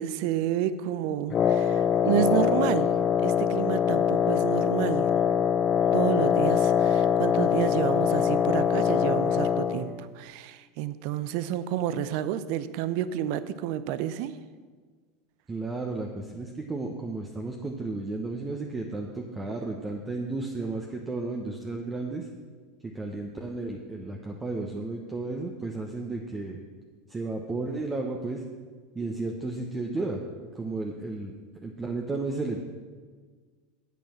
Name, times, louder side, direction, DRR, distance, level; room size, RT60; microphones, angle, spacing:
voice 1, 0.0-2.9 3.2-5.1 5.9-14.3, right 11 dB, 60° right, 14 dB, 0.6 m, -30 dB
Wind instrument woodwind instrument, 1.3-9.9, left 8 dB, 35° left, 0.6 m, -23 dB
voice 2, 15.5-22.3 22.8-26.6 27.1-28.4 28.9-30.2 30.5-31.3 31.6-32.6, right 3 dB, 20° right, 1 dB, 1.0 m, -33 dB
9.3 x 8.4 x 5.7 m, 1.5 s
hypercardioid pair, 85°, 0 cm